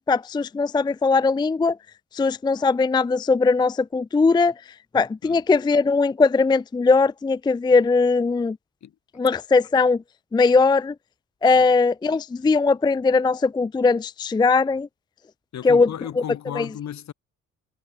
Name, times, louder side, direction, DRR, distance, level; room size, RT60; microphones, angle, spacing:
voice 1, 0.0-1.8 2.1-4.5 4.9-8.6 9.2-10.0 10.3-10.9 11.4-14.9 15.6-15.9 16.6-16.7, left 4 dB, 15° left, 0.4 m, -20 dB
voice 2, 15.5-17.1, left 10 dB, 65° left, 4.1 m, -34 dB
cardioid pair, 90°, 30 cm